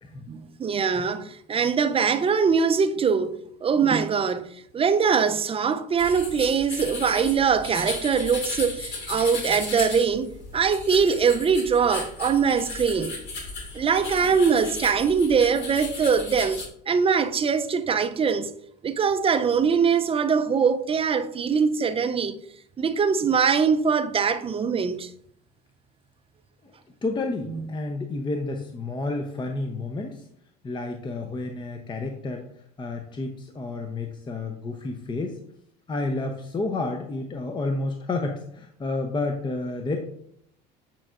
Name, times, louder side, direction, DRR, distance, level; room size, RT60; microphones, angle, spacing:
voice 1, 0.3-4.5 4.7-13.1 13.7-18.5 18.8-22.4 22.8-25.1, right 6 dB, 25° right, 0.5 m, -22 dB
sound 1, 6.0-16.7, left 3 dB, 55° left, 2.3 m, -35 dB
voice 2, 27.0-30.2 30.6-32.5 32.8-35.4 35.9-40.0, left 2 dB, 20° left, 0.7 m, -30 dB
8.7 x 4.4 x 2.5 m
hypercardioid pair, 80°, 21 cm